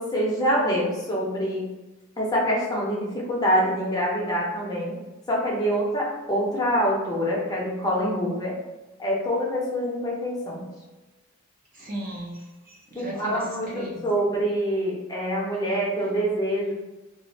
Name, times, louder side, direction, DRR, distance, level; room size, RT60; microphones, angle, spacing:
voice 1, 0.0-1.7 2.2-5.0 5.3-8.5 9.0-10.7 12.9-16.7, equal, 15° left, -4 dB, 0.7 m, -25 dB
voice 2, 11.7-13.4 13.7-14.0, right 1 dB, 40° right, -3 dB, 0.7 m, -36 dB
2.6 x 2.4 x 4.1 m, 1.1 s
head